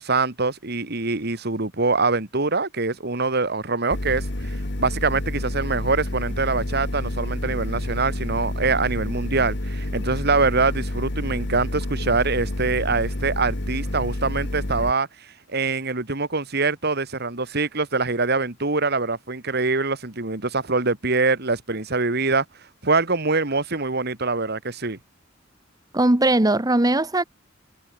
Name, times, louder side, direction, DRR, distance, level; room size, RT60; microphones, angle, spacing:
voice 1, 0.0-15.1 15.5-22.4 22.8-25.0, right 3 dB, 55° right, 2.5 m, -24 dB
sound 1, 3.9-14.9, left 1 dB, 60° left, 2.4 m, -29 dB
voice 2, 25.9-27.2, right 2 dB, 20° right, 1.1 m, -19 dB
head